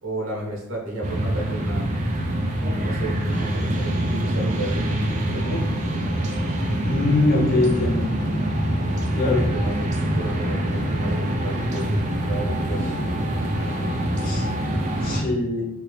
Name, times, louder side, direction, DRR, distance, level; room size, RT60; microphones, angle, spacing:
voice 1, 0.0-1.8 2.6-5.8 9.2-13.0 13.3-13.4, right 1 dB, 70° right, -4 dB, 1.1 m, -33 dB
sound 1, 1.0-15.2, right 1 dB, 35° right, 0.4 m, -25 dB
voice 2, 6.8-8.0 9.1-9.4 14.2-14.5 15.0-15.7, left 2 dB, 45° left, -1 dB, 0.6 m, -22 dB
2.9 x 2.7 x 3.2 m, 0.81 s
head